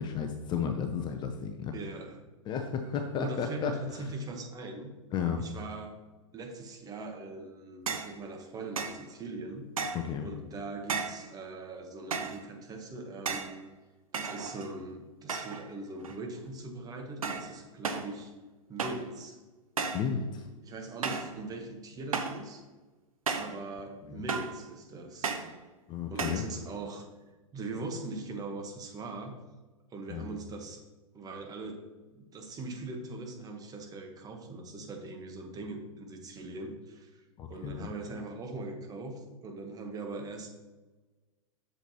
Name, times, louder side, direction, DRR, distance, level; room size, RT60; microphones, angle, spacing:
voice 1, 0.0-1.7 2.5-3.7 5.1-5.5 9.9-10.3 19.9-20.5 24.1-24.2 25.9-26.4 30.1-30.2 37.4-37.9, left 7 dB, 25° left, 5 dB, 0.6 m, -33 dB
voice 2, 1.7-2.2 3.2-4.9 5.4-6.0 6.3-9.7 10.2-13.6 14.1-18.3 18.7-19.4 20.6-22.6 23.3-25.3 26.1-27.1 27.5-29.3 29.9-30.8 31.1-31.8 32.1-37.2 37.5-40.5, right 2 dB, 20° right, 3 dB, 1.2 m, -41 dB
sound 1, 7.9-8.2 8.8-9.0 9.8-10.1 10.9-11.3 12.1-12.4 13.3-13.6 14.1-14.8 15.3-15.7 16.0-16.5 17.2-17.5 17.8-18.1 18.8-19.1 19.8-20.1 21.0-21.4 22.1-22.4 23.3-23.6 24.3-24.6 25.2-25.5 26.2-26.5, right 5 dB, 80° right, 0.8 m, -34 dB
8.0 x 6.8 x 2.9 m, 1.2 s
figure-of-eight pair, 105°, 18 cm